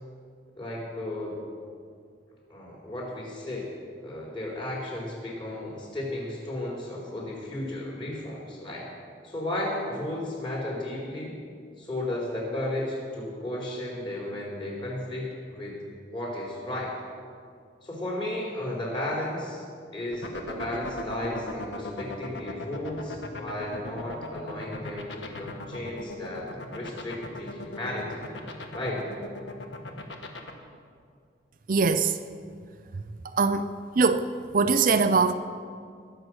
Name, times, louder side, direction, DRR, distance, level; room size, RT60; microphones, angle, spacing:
voice 1, 0.6-1.4 2.5-3.8 4.0-8.9 9.2-11.3 11.8-15.8 16.1-16.9 17.8-19.6 19.9-26.5 26.7-28.3 28.7-29.1, left 1 dB, 30° left, -4 dB, 4.1 m, -34 dB
sound 1, 20.1-30.5, left 2 dB, 85° left, 1.4 m, -37 dB
voice 2, 31.7-32.1 33.3-33.7 34.0-34.2 34.5-35.3, right 4 dB, 50° right, 10 dB, 0.5 m, -21 dB
20.5 x 7.8 x 6.3 m, 2.2 s
head